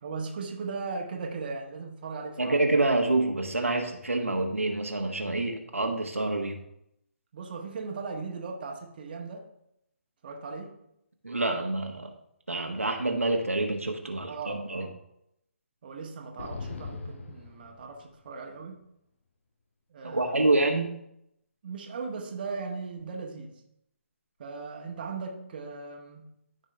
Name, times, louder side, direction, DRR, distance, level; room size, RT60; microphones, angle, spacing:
voice 1, 0.0-2.9 7.3-9.5 10.2-10.8 14.3-14.9 15.8-18.9 19.9-20.6 21.6-23.6 24.4-26.3, right 4 dB, 45° right, 1 dB, 1.4 m, -38 dB
voice 2, 2.4-6.6 11.2-12.1 12.5-14.9 20.0-20.9, right 2 dB, 85° right, 2 dB, 1.4 m, -27 dB
sound 1, 16.4-18.3, left 4 dB, 65° left, 1.7 m, -40 dB
14.0 x 5.3 x 3.4 m, 0.79 s
figure-of-eight pair, 140°, 7 cm